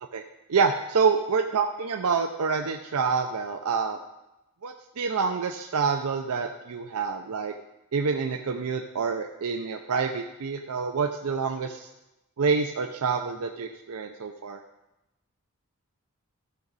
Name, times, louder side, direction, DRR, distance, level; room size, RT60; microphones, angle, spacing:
voice 1, 0.5-4.0 4.6-7.5 7.9-11.9 12.4-14.6, right 5 dB, 90° right, 4 dB, 0.6 m, -27 dB
14.5 x 6.2 x 4.0 m, 0.96 s
head